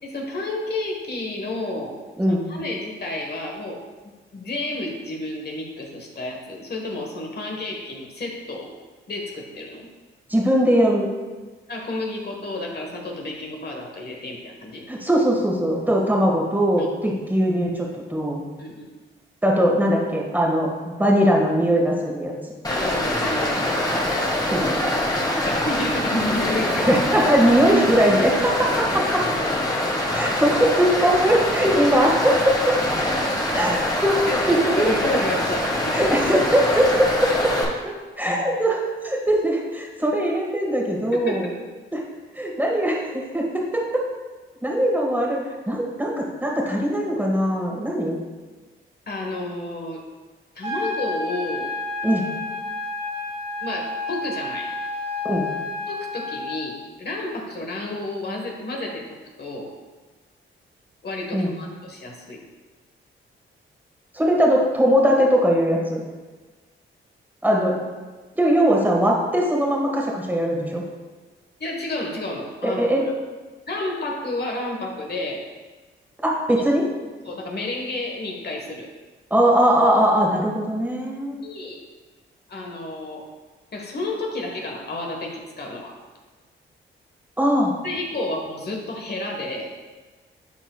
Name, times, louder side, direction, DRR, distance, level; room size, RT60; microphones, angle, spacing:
voice 1, 0.0-2.0 2.3-3.8 4.3-8.7 9.1-9.9 11.7-14.8 16.8-16.9 18.6-18.9 22.7-23.8 25.5-26.9 33.3-33.4 34.3-34.4 34.8-36.3 41.3-41.4 49.1-50.0 50.5-51.7 53.6-54.8 55.9-59.1 59.4-59.7 61.0-62.4 71.6-72.9 73.7-75.5 76.5-76.6 77.2-78.9 81.4-81.8 82.5-83.3 83.7-86.0 87.8-89.8, left 2 dB, 50° left, 0 dB, 1.5 m, -31 dB
voice 2, 10.3-11.1 14.9-18.4 19.4-22.3 24.5-24.8 26.8-28.3 28.9-29.2 30.1-32.8 33.5-33.8 34.0-34.2 34.5-34.9 35.9-37.7 38.2-41.5 41.9-42.0 42.4-44.0 44.6-45.4 45.7-48.2 52.0-52.3 55.2-55.5 61.3-61.5 64.1-66.0 67.4-67.8 68.4-70.8 72.6-73.0 76.2-76.9 79.3-81.4 87.4-87.7, equal, 10° right, -2 dB, 1.8 m, -20 dB
Stream, 22.6-37.6, left 1 dB, 20° left, 1.8 m, -24 dB
sound 1, 50.6-56.6, left 3 dB, 25° right, 1.2 m, -30 dB
12.0 x 4.4 x 2.4 m, 1.3 s
cardioid pair, 60°, 21 cm